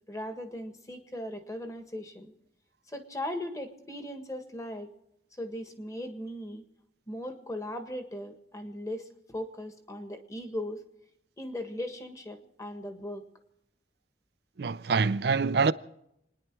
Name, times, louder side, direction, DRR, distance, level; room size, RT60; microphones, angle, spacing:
voice 1, 0.0-2.3 2.9-4.9 5.4-6.6 7.1-10.8 11.4-13.2, left 1 dB, 20° left, 1.6 m, -38 dB
voice 2, 14.6-15.7, right 4 dB, 60° right, 0.5 m, -25 dB
28.5 x 10.5 x 4.7 m
head